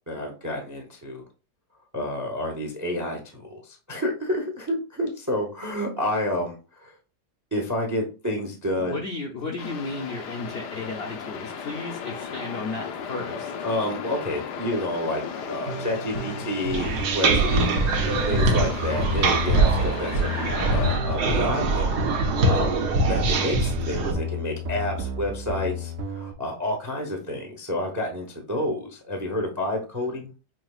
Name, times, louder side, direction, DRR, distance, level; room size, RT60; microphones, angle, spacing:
voice 1, 0.1-1.2 1.9-6.9 7.5-9.0 13.6-17.8 18.3-20.3 20.7-22.8 23.1-30.3, left 1 dB, 25° right, 3 dB, 0.4 m, -29 dB
voice 2, 8.8-13.5 16.1-16.2, left 3 dB, 65° left, 0 dB, 0.6 m, -34 dB
sound 1, 9.6-21.0, left 6 dB, 85° left, 1.3 m, -36 dB
sound 2, 15.7-26.3, equal, 60° right, 0.7 m, -33 dB
sound 3, 16.7-24.1, right 2 dB, 80° right, 1.4 m, -23 dB
5.8 x 2.8 x 2.3 m, 0.34 s
omnidirectional pair, 1.8 m